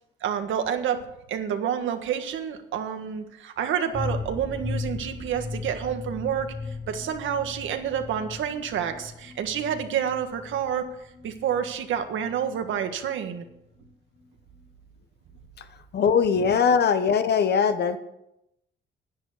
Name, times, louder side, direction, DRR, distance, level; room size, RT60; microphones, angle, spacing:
voice 1, 0.2-1.0 1.3-10.9 11.2-13.4 16.3-16.5, right 8 dB, 80° right, 7 dB, 1.6 m, -29 dB
sound 1, 3.9-13.5 13.8-13.9 14.2-14.3, left 3 dB, 30° left, 2.0 m, -37 dB
voice 2, 15.9-18.0, left 6 dB, 55° left, 10 dB, 1.3 m, -21 dB
10.5 x 10.5 x 6.8 m, 0.83 s
cardioid pair, 90°, 20 cm